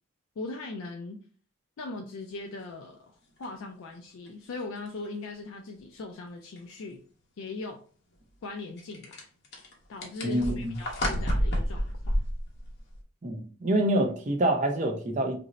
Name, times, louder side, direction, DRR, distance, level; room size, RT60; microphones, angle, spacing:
voice 1, 0.4-1.2 1.8-7.0 7.4-7.8 8.4-9.2 9.9-12.2, left 3 dB, 65° left, 0.4 m, -39 dB
sound 1, 3.4-3.5 4.3-4.4 4.9-5.0 6.6-6.7 8.8-13.0, equal, 50° left, 0.8 m, -30 dB
voice 2, 10.2-10.7 13.2-15.4, right 1 dB, 35° right, 0.5 m, -26 dB
2.5 x 2.0 x 3.9 m
head